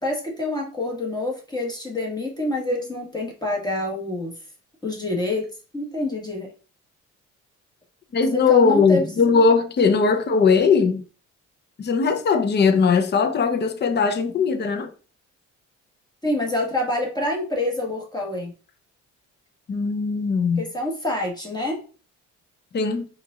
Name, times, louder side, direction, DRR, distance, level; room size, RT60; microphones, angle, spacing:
voice 1, 0.0-4.3 4.8-5.5 5.7-6.5 8.3-9.0 9.9-10.0 16.2-18.5 20.6-21.8, left 1 dB, 15° left, 1.5 m, -27 dB
voice 2, 8.1-11.0 11.8-14.9 19.7-20.7 22.7-23.1, left 5 dB, 35° left, 0.6 m, -19 dB
4.6 x 2.5 x 3.8 m
cardioid pair, 90°, 30 cm